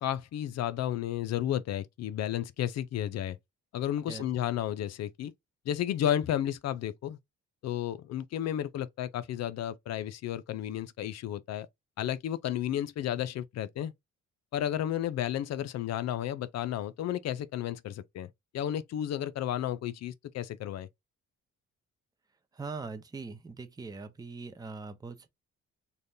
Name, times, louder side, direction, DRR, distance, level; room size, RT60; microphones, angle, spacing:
voice 1, 0.0-3.4 3.7-5.3 5.7-7.2 7.6-11.7 12.0-13.9 14.5-18.3 18.5-20.9, left 11 dB, 60° left, 0.5 m, -32 dB
voice 2, 22.5-25.3, right 4 dB, 15° right, 0.6 m, -41 dB
3.3 x 2.2 x 2.6 m
cardioid pair, 90°, 30 cm